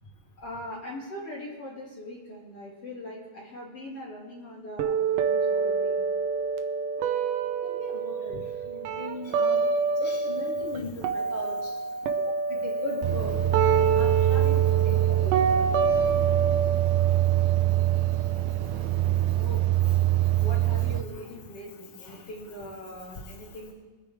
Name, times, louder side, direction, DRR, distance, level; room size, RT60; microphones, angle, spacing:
voice 1, 0.4-5.9 12.2-12.3 19.4-19.6 20.4-23.7, left 1 dB, 45° left, -5 dB, 3.1 m, -41 dB
sound 1, 4.8-10.8 11.0-18.8, right 5 dB, 75° right, 2.3 m, -27 dB
voice 2, 7.7-8.4 8.7-9.6 10.0-11.6 12.5-13.3 13.6-14.6 14.8-15.4, left 2 dB, 20° left, -4 dB, 2.8 m, -38 dB
sound 2, 13.0-21.0, right 15 dB, 90° right, 2.4 m, -24 dB
24.5 x 9.6 x 3.5 m, 1.3 s
omnidirectional pair, 4.1 m